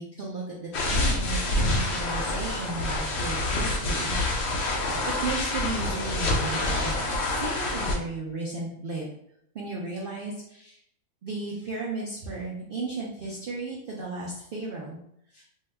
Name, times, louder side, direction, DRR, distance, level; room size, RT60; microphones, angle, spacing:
voice 1, 0.0-4.2 5.2-9.1 9.5-10.8 11.2-15.0 15.3-15.4, right 3 dB, 80° right, -4 dB, 0.4 m, -35 dB
sound 1, 0.7-8.0, left 2 dB, 70° left, 0.6 m, -27 dB
2.7 x 2.2 x 3.3 m, 0.72 s
omnidirectional pair, 1.6 m